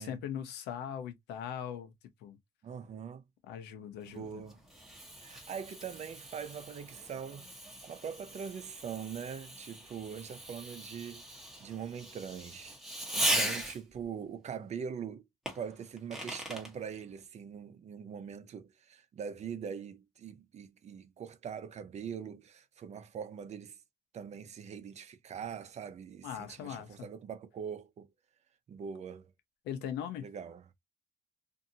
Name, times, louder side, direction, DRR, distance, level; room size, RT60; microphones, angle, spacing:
voice 1, 0.0-1.9 2.2-2.4 3.5-4.4 13.3-13.5 26.2-27.1 29.6-30.2, left 9 dB, 85° left, 0.8 m, -40 dB
voice 2, 2.6-3.2 4.1-4.6 5.2-7.5 7.8-11.3 11.6-12.8 13.1-15.3 15.5-23.8 24.1-28.1 28.7-29.3 30.2-30.6, right 7 dB, 40° right, 0.6 m, -42 dB
Fireworks, 4.1-14.0 15.5-16.7, right 1 dB, ahead, 1.1 m, -39 dB
2.6 x 2.6 x 2.7 m
cardioid pair, 110°, 17 cm